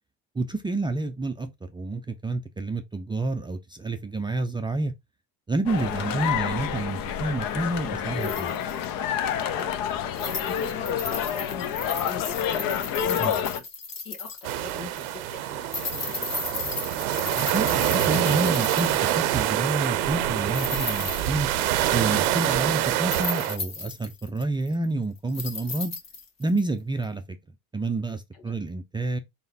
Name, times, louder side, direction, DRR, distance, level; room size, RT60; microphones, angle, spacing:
voice 1, 0.4-4.9 5.5-8.6 13.2-13.4 17.3-21.5 21.9-25.9 26.4-27.2 27.7-29.2, right 2 dB, 10° right, 0.4 m, -29 dB
sound 1, 5.7-13.6, left 9 dB, 55° left, 0.7 m, -28 dB
sound 2, 8.2-8.8 9.6-9.7 10.1-14.7 15.0-15.1 15.6-19.2 20.2-21.9 22.2-22.3 23.0-24.8 25.3-26.6 27.0-27.1, left 4 dB, 40° left, 1.5 m, -35 dB
voice 2, 9.5-13.6 14.0-16.3 22.4-22.6 28.3-28.6, left 5 dB, 80° left, 1.8 m, -42 dB
sound 3, 14.4-23.6, right 13 dB, 85° right, 0.7 m, -25 dB
4.0 x 3.8 x 2.7 m
supercardioid pair, 90°, 42 cm